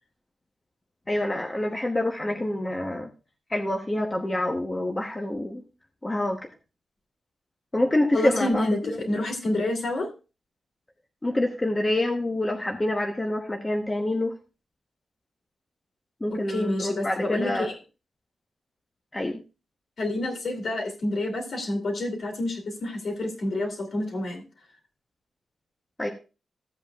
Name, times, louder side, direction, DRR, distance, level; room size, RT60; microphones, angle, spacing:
voice 1, 1.1-3.1 3.5-5.6 6.0-6.5 7.7-8.7 11.2-14.3 16.2-17.7 19.1-19.4 26.0-26.1, left 1 dB, 15° left, 1 dB, 1.0 m, -26 dB
voice 2, 8.1-10.1 16.3-17.7 20.0-24.4, left 1 dB, 55° left, 4 dB, 2.7 m, -28 dB
14.5 x 8.2 x 2.4 m, 0.32 s
wide cardioid pair, 155°, 0 cm